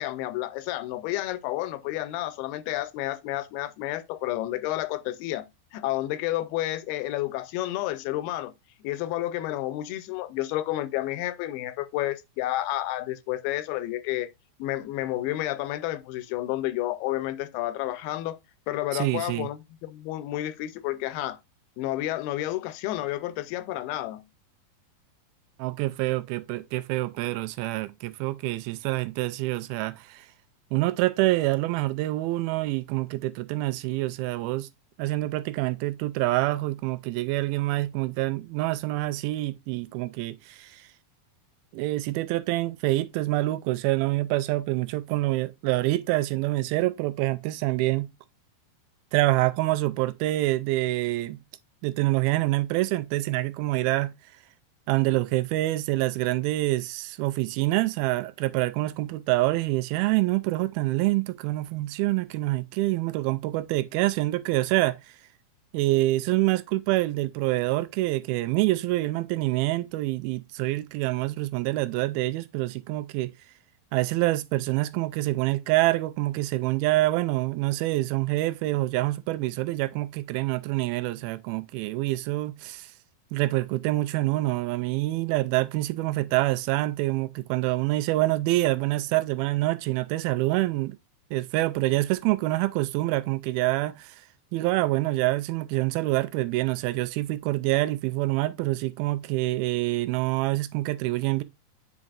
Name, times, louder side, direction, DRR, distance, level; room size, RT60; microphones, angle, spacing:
voice 1, 0.0-8.5 8.8-14.3 14.6-18.4 18.7-21.4 21.8-24.2, left 15 dB, 90° left, 2.6 m, -30 dB
voice 2, 18.9-19.5 25.6-30.3 30.7-34.7 35.0-40.9 41.7-48.1 49.1-51.4 51.8-54.1 54.9-65.0 65.7-73.3 73.9-82.9 83.3-91.0 91.3-94.2 94.5-101.4, right 18 dB, 85° right, 2.3 m, -26 dB
8.7 x 5.2 x 2.4 m
omnidirectional pair, 4.4 m